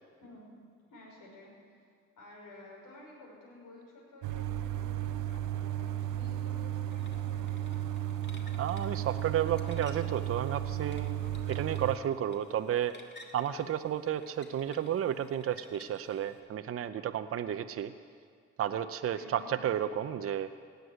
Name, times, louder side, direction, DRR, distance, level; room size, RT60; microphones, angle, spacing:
voice 1, 0.9-1.8 2.2-7.7 19.1-19.5, left 1 dB, 85° left, -3 dB, 5.6 m, -53 dB
sound 1, 4.2-12.0, right 11 dB, 85° right, 0.7 m, -34 dB
sound 2, 6.9-16.4, left 3 dB, 35° left, 1.9 m, -56 dB
voice 2, 8.6-13.0 13.3-17.9 18.6-20.5, right 10 dB, 50° right, 10 dB, 0.7 m, -32 dB
17.5 x 8.2 x 9.6 m, 2.1 s
cardioid pair, 90°, 30 cm